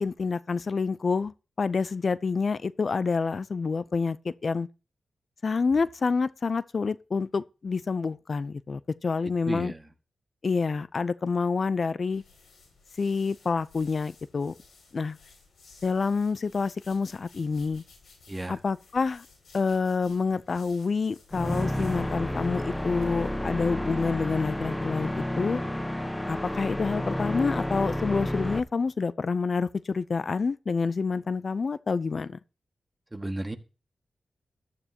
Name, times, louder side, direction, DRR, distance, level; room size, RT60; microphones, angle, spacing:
voice 1, 0.0-4.7 5.4-9.7 10.4-12.2 13.0-14.5 14.9-15.2 15.8-17.8 18.5-19.3 19.5-25.6 26.3-32.4, left 4 dB, 60° left, 0.5 m, -28 dB
voice 2, 9.4-9.9 18.3-18.6 33.1-33.6, right 2 dB, 20° right, 1.8 m, -34 dB
sound 1, 12.1-23.3, left 4 dB, 80° left, 6.1 m, -56 dB
sound 2, 21.3-28.6, left 1 dB, 15° left, 1.0 m, -30 dB
14.0 x 12.5 x 2.9 m
cardioid pair, 50°, 0 cm